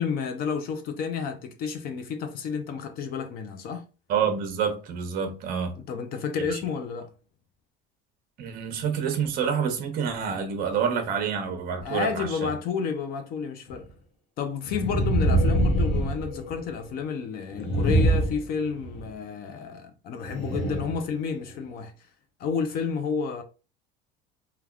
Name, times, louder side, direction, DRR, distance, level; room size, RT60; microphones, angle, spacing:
voice 1, 0.0-3.8 5.9-7.1 11.8-13.9 14.4-21.9 22.4-23.4, left 6 dB, 45° left, 0.5 m, -30 dB
voice 2, 4.1-5.7 6.5-6.6 8.4-12.5, right 7 dB, 45° right, 0.7 m, -28 dB
sound 1, 13.7-13.8 14.6-16.8 17.5-19.1 20.2-21.0 21.6-21.7, right 1 dB, 85° left, 1.0 m, -24 dB
3.4 x 2.2 x 2.3 m
cardioid pair, 135°, 21 cm